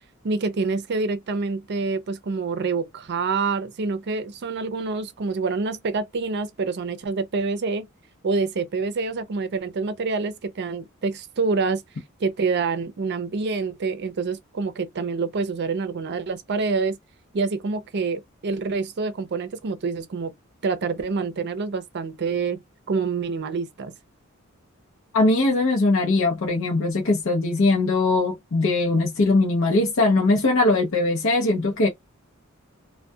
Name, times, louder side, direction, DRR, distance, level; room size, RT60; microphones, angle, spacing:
voice 1, 0.2-7.9 8.2-11.8 12.2-17.0 17.3-20.3 20.6-22.6 22.9-23.9, right 4 dB, 55° right, 0.5 m, -26 dB
voice 2, 25.1-31.9, left 2 dB, 65° left, 0.6 m, -20 dB
2.3 x 2.2 x 2.6 m
head